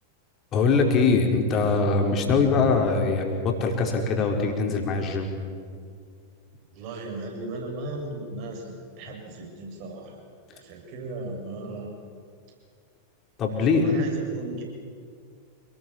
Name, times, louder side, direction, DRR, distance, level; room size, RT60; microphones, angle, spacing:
voice 1, 0.5-5.3 13.4-13.8, left 4 dB, 30° left, 2 dB, 4.8 m, -22 dB
voice 2, 6.7-10.2 10.5-11.9 13.6-14.6, right 2 dB, 45° right, 1 dB, 7.4 m, -36 dB
28.5 x 20.0 x 7.4 m, 2.2 s
figure-of-eight pair, 90°, 0 cm